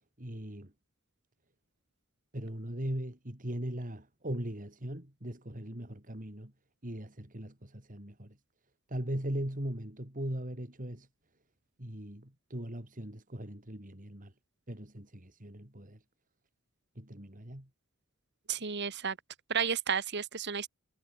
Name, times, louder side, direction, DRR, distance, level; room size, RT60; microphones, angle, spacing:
voice 1, 0.2-0.7 2.3-6.5 6.8-8.4 8.9-11.1 11.8-14.3 14.7-16.0 16.9-17.7, right 1 dB, 40° right, 3.4 m, -39 dB
voice 2, 18.5-19.2 19.5-20.7, right 6 dB, 55° right, 1.7 m, -32 dB
head